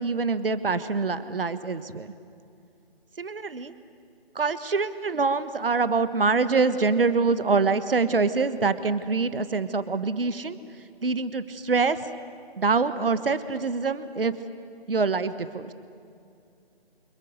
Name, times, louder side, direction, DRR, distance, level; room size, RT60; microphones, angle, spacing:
voice 1, 0.0-2.1 3.2-3.7 4.3-10.6 11.0-12.0 12.6-14.3 14.9-15.7, right 4 dB, 60° right, 13 dB, 1.4 m, -25 dB
29.5 x 28.0 x 6.5 m, 2.5 s
figure-of-eight pair, 155°, 31 cm